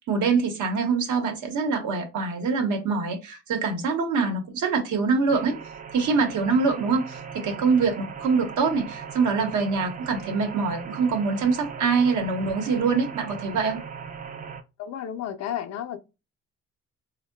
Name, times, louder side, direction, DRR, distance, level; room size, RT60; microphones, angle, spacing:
voice 1, 0.1-5.5 5.9-13.8, right 4 dB, 75° right, 0.9 m, -24 dB
sound 1, 5.3-14.6, right 6 dB, 25° right, 0.4 m, -39 dB
voice 2, 14.8-16.0, left 10 dB, 60° left, 0.5 m, -32 dB
3.6 x 2.1 x 2.2 m
cardioid pair, 90°, 30 cm